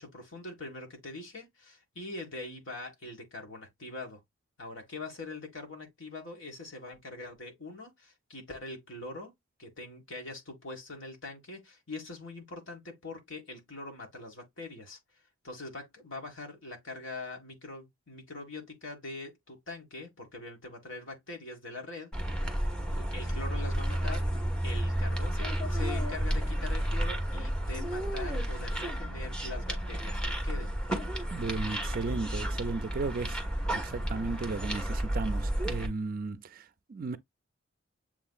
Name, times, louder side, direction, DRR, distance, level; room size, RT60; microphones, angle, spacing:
voice 1, 0.0-4.2 4.6-9.3 9.6-15.0 15.4-22.1 22.9-24.2 24.6-30.8, left 2 dB, 65° left, 1.8 m, -43 dB
sound 1, 22.1-35.9, right 1 dB, 5° left, 1.1 m, -32 dB
voice 2, 31.3-33.4 33.7-37.2, right 3 dB, 45° right, 0.4 m, -35 dB
7.2 x 2.8 x 2.3 m
head